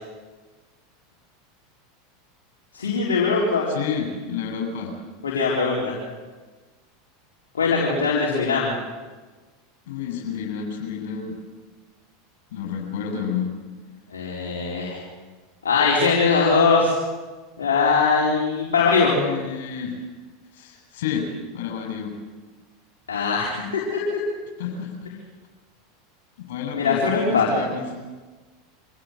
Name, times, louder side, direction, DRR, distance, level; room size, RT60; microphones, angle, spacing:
voice 1, 2.7-3.7 5.2-6.0 7.5-8.7 14.1-15.0 15.6-16.9 17.6-19.2 23.1-24.0 26.7-27.6, left 4 dB, 85° left, -4 dB, 4.3 m, -21 dB
voice 2, 3.7-5.0 9.9-11.4 12.5-13.5 19.0-20.0 20.5-21.3 21.5-22.2 24.6-25.1 26.4-27.9, left 7 dB, 70° left, 2 dB, 7.7 m, -30 dB
25.5 x 16.5 x 8.0 m, 1.3 s
hypercardioid pair, 90°, 0 cm